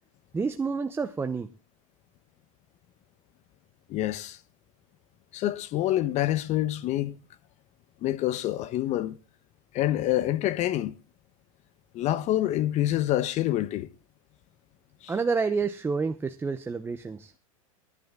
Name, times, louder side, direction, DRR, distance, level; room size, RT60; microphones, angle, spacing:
voice 1, 0.3-1.5 15.1-17.3, right 5 dB, 15° right, 0.8 m, -29 dB
voice 2, 3.9-4.4 5.3-7.2 8.0-9.2 9.7-10.9 11.9-13.9 15.0-15.1, left 14 dB, 40° left, 1.1 m, -27 dB
20.5 x 11.0 x 3.7 m
supercardioid pair, 120°, 18 cm